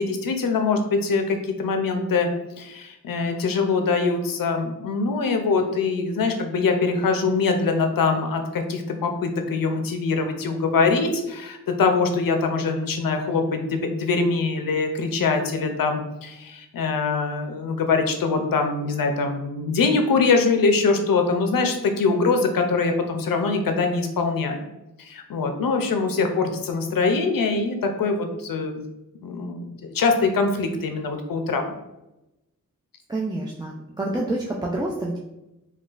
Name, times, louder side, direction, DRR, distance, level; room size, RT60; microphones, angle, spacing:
voice 1, 0.0-2.3 2.6-24.6 25.0-28.8 29.2-31.8, left 4 dB, 90° left, 5 dB, 0.5 m, -23 dB
voice 2, 33.1-35.2, right 2 dB, 15° right, -3 dB, 0.3 m, -28 dB
3.8 x 2.3 x 2.4 m, 0.94 s
wide cardioid pair, 75°, 33 cm